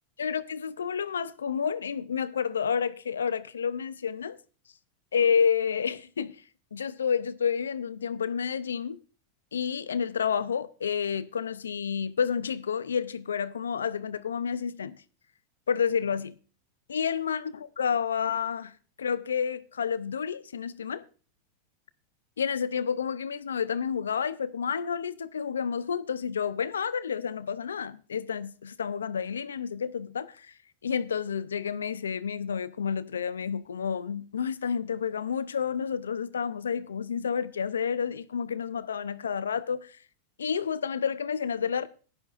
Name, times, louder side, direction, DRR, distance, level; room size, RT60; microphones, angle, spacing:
voice 1, 0.2-4.4 5.1-6.4 6.7-9.0 9.5-15.0 15.7-16.4 16.9-21.0 22.4-30.5 30.8-40.0 40.4-41.9, left 7 dB, 90° left, 0.5 m, -30 dB
16.0 x 10.5 x 2.5 m
hypercardioid pair, 105°, 0 cm